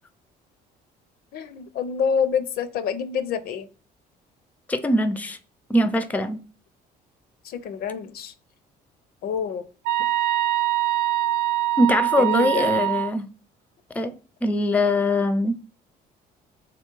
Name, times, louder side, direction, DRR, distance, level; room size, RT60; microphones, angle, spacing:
voice 1, 1.3-3.7 7.4-8.3 9.2-9.7 12.2-12.7, left 7 dB, 65° left, 0.6 m, -27 dB
voice 2, 4.7-5.4 5.7-6.4 11.8-13.3 13.9-14.1 14.4-15.5, left 1 dB, 10° left, 0.5 m, -22 dB
sound 1, 9.9-13.1, right 14 dB, 65° right, 0.4 m, -23 dB
3.7 x 3.1 x 4.5 m
cardioid pair, 110°, 17 cm